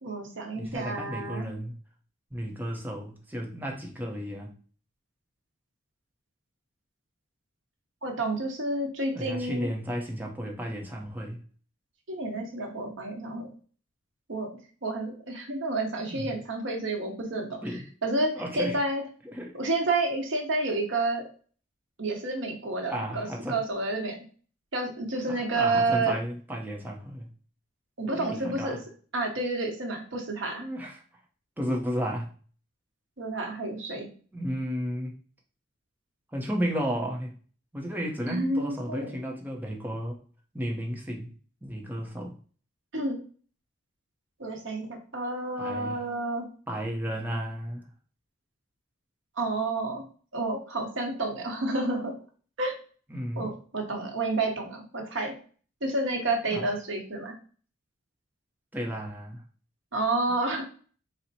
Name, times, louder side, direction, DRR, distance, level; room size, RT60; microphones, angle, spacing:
voice 1, 0.0-1.5 8.0-9.7 12.1-13.5 14.3-14.5 14.8-17.6 18.0-19.0 19.5-21.3 22.0-24.2 24.7-26.2 28.0-28.8 29.1-30.6 33.2-34.1 38.3-39.1 42.9-43.2 44.4-46.5 49.4-50.0 50.3-52.1 52.6-52.7 53.4-55.3 55.8-57.3 59.9-60.6, right 2 dB, 60° right, 2 dB, 1.0 m, -30 dB
voice 2, 0.5-1.8 2.3-4.5 9.1-11.4 16.1-16.4 17.6-17.8 18.3-18.8 19.3-19.5 22.9-23.6 25.3-27.3 28.1-28.8 30.6-31.0 31.6-32.3 34.3-35.1 36.3-37.4 37.7-40.2 40.5-41.3 41.6-42.4 45.6-46.0 46.7-47.9 53.1-53.5 56.2-56.7 58.7-59.4, equal, 10° right, 0 dB, 0.7 m, -33 dB
4.2 x 2.1 x 4.1 m, 0.41 s
head